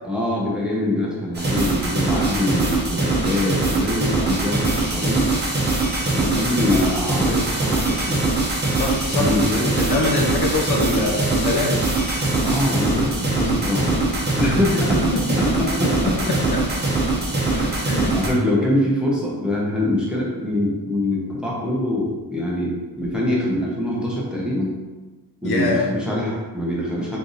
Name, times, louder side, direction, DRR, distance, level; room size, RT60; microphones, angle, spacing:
voice 1, 0.0-5.3 6.1-8.3 9.1-10.1 12.4-15.0 15.6-15.9 17.5-17.8 18.1-24.8 25.4-27.2, left 1 dB, ahead, -5 dB, 0.8 m, -24 dB
sound 1, 1.3-18.3, right 2 dB, 25° right, 0.9 m, -22 dB
voice 2, 8.8-9.3 9.8-11.8 15.8-15.9 17.6-18.1 25.4-25.9, left 2 dB, 70° left, 0 dB, 0.8 m, -23 dB
4.0 x 3.3 x 4.0 m, 1.2 s
wide cardioid pair, 170°, 39 cm